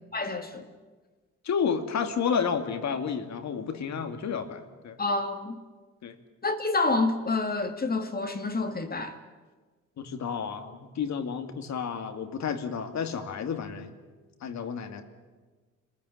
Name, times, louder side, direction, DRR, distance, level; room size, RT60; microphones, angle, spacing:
voice 1, 0.1-0.7 5.0-5.6 6.4-9.1, left 3 dB, 30° left, 2.0 m, -28 dB
voice 2, 1.4-5.0 6.0-6.2 10.0-13.9 14.4-15.0, left 6 dB, 65° left, 2.4 m, -31 dB
26.0 x 15.0 x 10.0 m
cardioid pair, 90°, 30 cm